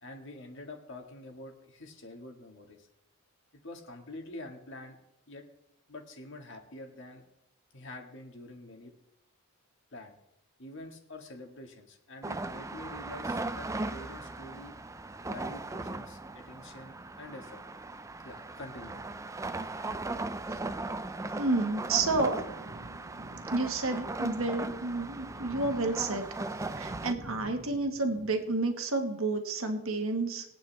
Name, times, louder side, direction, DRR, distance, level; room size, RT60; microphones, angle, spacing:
voice 1, 0.0-2.9 3.5-5.0 5.3-5.5 5.9-7.3 7.7-8.9 9.9-10.2 10.6-14.8 15.2-17.6 18.2-19.0, left 2 dB, 55° left, 3 dB, 1.9 m, -46 dB
sound 1, 12.2-27.1, right 2 dB, 15° right, 0.4 m, -38 dB
voice 2, 21.3-22.4 23.5-26.3 26.7-30.4, right 3 dB, 70° right, 5 dB, 1.6 m, -30 dB
sound 2, 21.9-28.7, right 1 dB, 45° right, 1.1 m, -47 dB
21.0 x 8.9 x 3.4 m, 0.84 s
head